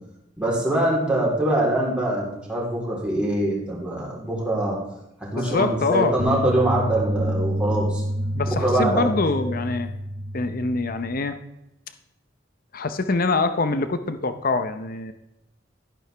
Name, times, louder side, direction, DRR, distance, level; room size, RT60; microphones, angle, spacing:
voice 1, 0.4-4.8 5.2-8.0 8.6-9.1, right 1 dB, 5° right, -5 dB, 3.6 m, -23 dB
voice 2, 5.3-6.1 7.7-7.8 8.3-9.9 10.3-11.4 12.7-15.1, left 3 dB, 50° left, 10 dB, 0.7 m, -24 dB
sound 1, 6.2-11.2, equal, 25° right, 1.1 m, -28 dB
12.5 x 11.0 x 3.4 m, 0.87 s
head